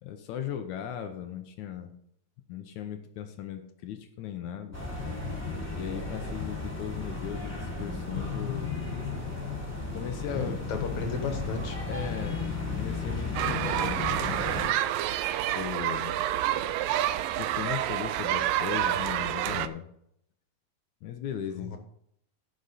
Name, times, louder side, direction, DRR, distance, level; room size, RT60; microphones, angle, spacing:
voice 1, 0.0-1.9 2.5-4.8 5.7-8.8 9.9-10.6 11.9-12.5 12.8-14.4 15.4-16.2 17.3-19.9 21.0-21.8, left 9 dB, 80° left, 6 dB, 1.7 m, -37 dB
sound 1, 4.7-14.7, left 3 dB, 5° right, 1.9 m, -34 dB
voice 2, 10.3-11.8 21.6-21.8, left 5 dB, 60° left, 5 dB, 2.2 m, -35 dB
sound 2, 13.4-19.7, right 12 dB, 80° right, 2.0 m, -28 dB
16.5 x 6.4 x 4.1 m, 0.72 s
omnidirectional pair, 4.5 m